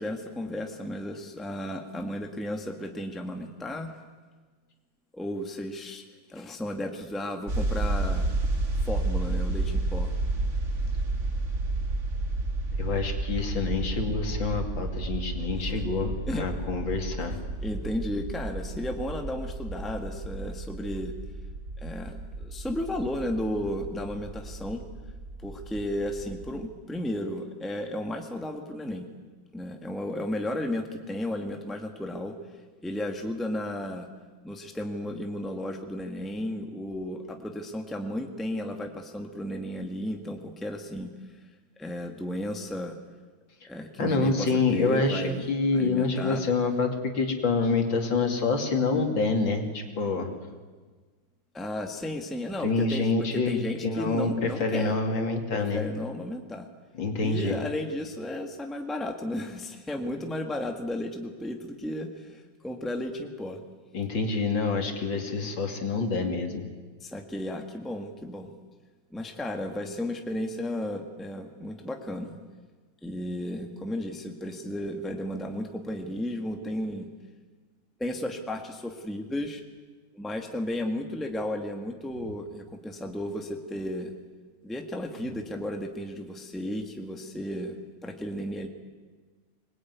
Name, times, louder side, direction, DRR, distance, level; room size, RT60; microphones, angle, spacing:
voice 1, 0.0-3.9 5.1-6.0 6.3-8.3 8.8-10.1 15.6-15.7 16.3-16.5 17.6-21.1 21.8-24.9 25.4-29.1 29.5-32.3 32.8-34.1 34.4-41.1 41.8-43.0 43.7-46.4 51.5-55.0 55.5-56.7 57.2-63.6 67.0-68.6 69.1-72.4 73.0-77.1 78.0-79.6 80.1-84.1 84.6-88.7, left 1 dB, ahead, 4 dB, 1.7 m, -34 dB
sound 1, 7.5-26.6, right 2 dB, 40° right, 2.3 m, -31 dB
voice 2, 12.8-17.4 44.0-50.3 52.6-55.9 57.0-57.6 63.9-66.7, left 3 dB, 80° left, 4 dB, 3.4 m, -27 dB
25.0 x 20.5 x 9.5 m, 1.4 s
omnidirectional pair, 2.1 m